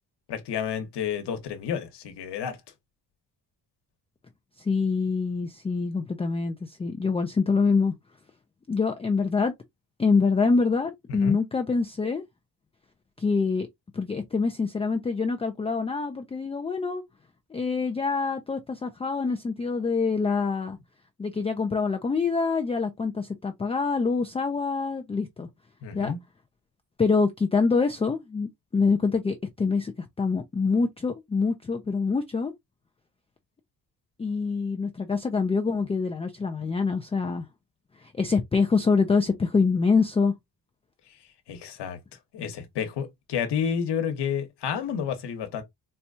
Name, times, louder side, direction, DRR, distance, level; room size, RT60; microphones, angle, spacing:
voice 1, 0.3-2.6 11.2-11.4 25.8-26.2 41.5-42.0 42.3-45.6, left 7 dB, 75° left, 1.1 m, -30 dB
voice 2, 4.6-7.9 8.7-9.5 10.0-12.2 13.2-13.7 13.9-17.0 17.5-20.8 21.2-25.5 25.9-26.1 27.0-32.5 34.2-37.5 38.0-40.3, left 4 dB, 15° left, 0.3 m, -25 dB
4.3 x 2.2 x 2.5 m
cardioid pair, 125°, 41 cm